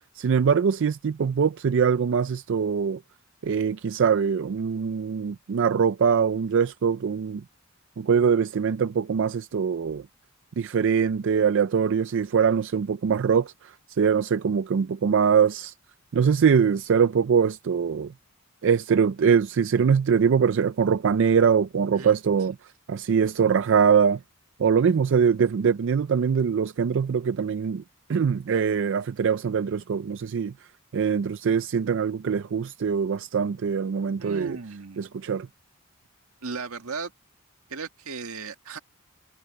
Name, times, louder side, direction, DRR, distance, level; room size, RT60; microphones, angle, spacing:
voice 1, 0.2-3.0 3.4-7.4 8.0-10.0 10.6-15.7 16.1-18.1 18.6-22.5 22.9-24.2 24.6-27.8 28.1-30.5 30.9-34.6 35.0-35.5, right 6 dB, 60° right, 0.4 m, -23 dB
voice 2, 34.2-35.1 36.4-37.1 37.7-38.8, right 4 dB, 85° right, 1.7 m, -36 dB
head